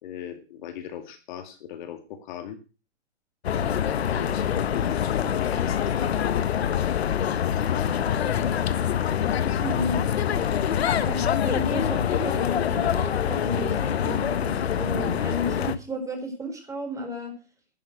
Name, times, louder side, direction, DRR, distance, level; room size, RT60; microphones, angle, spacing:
voice 1, 0.0-2.6 3.5-6.6 7.1-8.2 10.6-10.8, left 9 dB, 45° left, 7 dB, 2.2 m, -38 dB
sound 1, 3.4-15.8, left 9 dB, 65° left, 1.4 m, -25 dB
voice 2, 9.6-10.0 11.0-11.2 11.4-17.3, equal, 10° right, 3 dB, 4.8 m, -33 dB
11.5 x 10.5 x 6.2 m, 0.33 s
hypercardioid pair, 135°, 33 cm